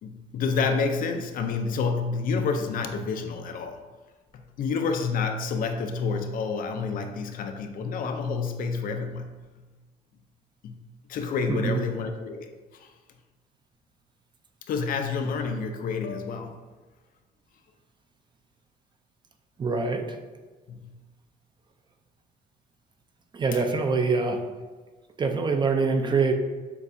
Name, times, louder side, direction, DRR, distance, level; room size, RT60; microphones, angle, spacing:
voice 1, 0.0-3.9 4.3-9.3 10.6-10.8 11.1-12.9 14.7-16.6 20.7-20.9 23.5-23.6, left 5 dB, 55° left, 0.5 m, -29 dB
voice 2, 11.5-11.8 19.6-20.2 23.3-24.4 25.2-26.3, right 4 dB, 25° right, 0.4 m, -24 dB
6.8 x 2.3 x 2.6 m
cardioid pair, 110°, 17 cm